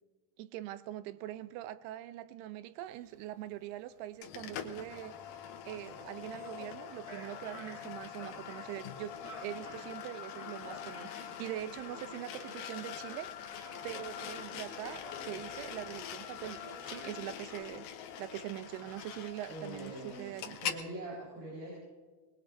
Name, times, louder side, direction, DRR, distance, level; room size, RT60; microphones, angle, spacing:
voice 1, 0.4-9.1 9.4-17.9 18.2-20.6, right 14 dB, 90° right, 2.6 m, -43 dB
sound 1, 2.8-13.0 13.6-16.0 16.4-17.6, right 1 dB, 10° right, 2.0 m, -53 dB
sound 2, 4.2-20.8, left 9 dB, 75° left, 2.6 m, -44 dB
voice 2, 19.5-21.8, right 1 dB, 65° right, 6.0 m, -43 dB
23.0 x 21.5 x 2.6 m
omnidirectional pair, 4.5 m